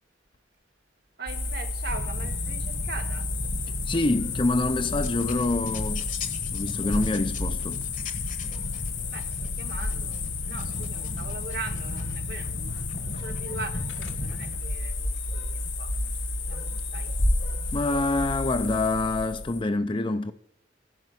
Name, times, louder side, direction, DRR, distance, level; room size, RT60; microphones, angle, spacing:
voice 1, 1.2-3.3 9.1-17.1, right 3 dB, 55° right, 1.3 m, -41 dB
sound 1, 1.3-19.6, left 3 dB, 80° left, 1.7 m, -31 dB
sound 2, 1.9-14.6, left 1 dB, 40° left, 1.2 m, -37 dB
voice 2, 3.9-6.1 6.5-7.8 17.7-20.3, left 2 dB, 25° left, 0.5 m, -26 dB
11.0 x 5.9 x 7.9 m
head